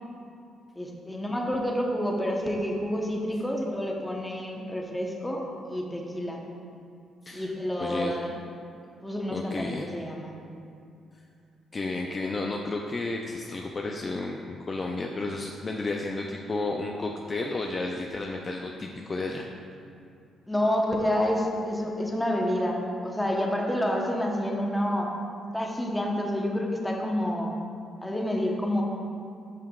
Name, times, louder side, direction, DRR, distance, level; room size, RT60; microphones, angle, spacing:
voice 1, 0.7-6.4 7.3-8.4 9.0-10.4 20.5-25.1 25.5-27.5 28.0-28.8, left 1 dB, 10° left, 0 dB, 0.9 m, -28 dB
voice 2, 7.8-8.1 9.3-9.9 11.7-19.5, left 2 dB, 35° left, 1 dB, 0.4 m, -32 dB
10.0 x 5.7 x 2.4 m, 2.5 s
cardioid pair, 90°, 0 cm